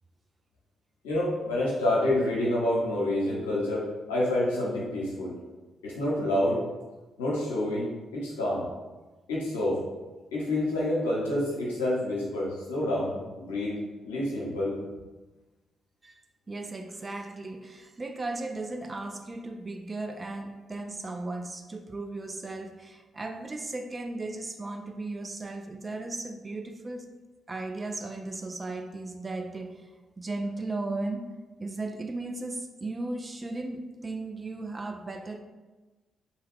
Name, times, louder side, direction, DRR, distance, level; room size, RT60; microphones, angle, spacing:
voice 1, 1.0-5.3 5.8-6.6 7.2-8.7 9.3-9.8 10.3-13.7 14.0-14.8, left 1 dB, 90° left, -5 dB, 0.8 m, -28 dB
voice 2, 16.5-27.1 27.5-29.9 30.2-31.2 31.6-35.4, right 2 dB, 35° right, 5 dB, 0.4 m, -36 dB
2.7 x 2.3 x 3.5 m, 1.2 s
hypercardioid pair, 40°, 0 cm